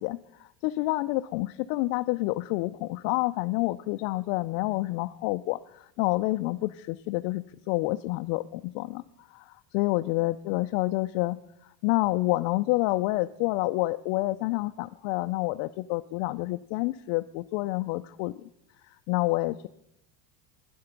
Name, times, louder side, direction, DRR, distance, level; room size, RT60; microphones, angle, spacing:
voice 1, 0.0-9.0 9.3-11.4 11.8-18.3 19.1-19.7, left 20 dB, 70° left, 9 dB, 0.5 m, -28 dB
12.0 x 10.5 x 5.7 m, 0.81 s
cardioid pair, 155°, 46 cm